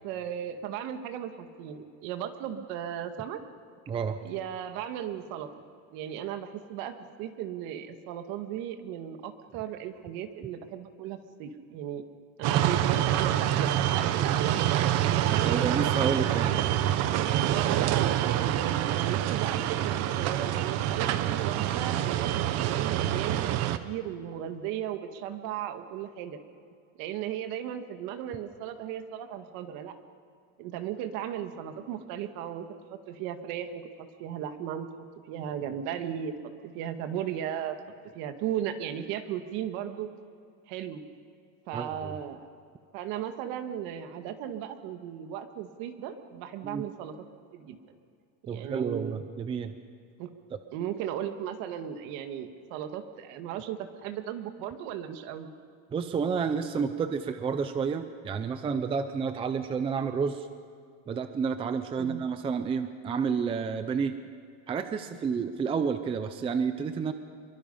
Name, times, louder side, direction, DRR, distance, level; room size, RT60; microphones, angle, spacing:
voice 1, 0.0-3.4 4.2-5.5 5.9-12.0 12.4-15.7 16.4-16.7 17.5-23.6 23.8-26.4 27.0-30.0 30.6-36.3 36.6-37.8 38.1-40.1 40.7-41.0 41.7-42.5 42.9-47.2 47.5-47.8 48.4-49.2 50.2-50.3 50.7-55.5 62.0-62.3, right 10 dB, 55° right, 7 dB, 1.9 m, -36 dB
voice 2, 3.9-4.2 15.4-16.5 41.7-42.1 46.6-46.8 48.5-49.7 55.9-60.5 61.1-64.1 64.7-67.1, right 6 dB, 15° right, 9 dB, 0.5 m, -30 dB
sound 1, 12.4-23.8, right 12 dB, 40° right, 1.0 m, -26 dB
27.0 x 23.0 x 5.6 m, 2.3 s
cardioid pair, 165°, 40 cm